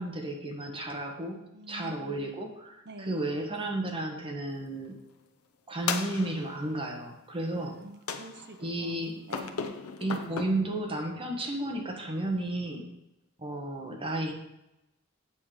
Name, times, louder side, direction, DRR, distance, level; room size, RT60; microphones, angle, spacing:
voice 1, 0.0-1.4 1.7-5.0 5.7-7.7 8.6-9.1 10.0-12.8 13.4-14.3, right 1 dB, 25° right, 1 dB, 1.5 m, -33 dB
voice 2, 1.5-2.3 2.8-3.3 7.5-9.7, right 1 dB, 50° right, 6 dB, 0.9 m, -47 dB
sound 1, 5.9-6.7 8.1-8.7 9.3-10.5, left 5 dB, 80° left, 0.9 m, -35 dB
8.6 x 6.8 x 5.0 m, 0.90 s
head